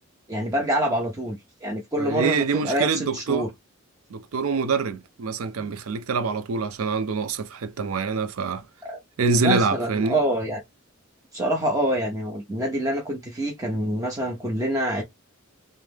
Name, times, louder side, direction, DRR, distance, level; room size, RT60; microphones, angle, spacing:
voice 1, 0.3-3.5 8.8-9.0 9.4-10.6 11.3-15.0, right 1 dB, 15° right, 0.8 m, -26 dB
voice 2, 2.0-3.5 4.1-8.6 9.2-10.2, right 4 dB, 90° right, 0.5 m, -25 dB
3.3 x 3.2 x 3.4 m
head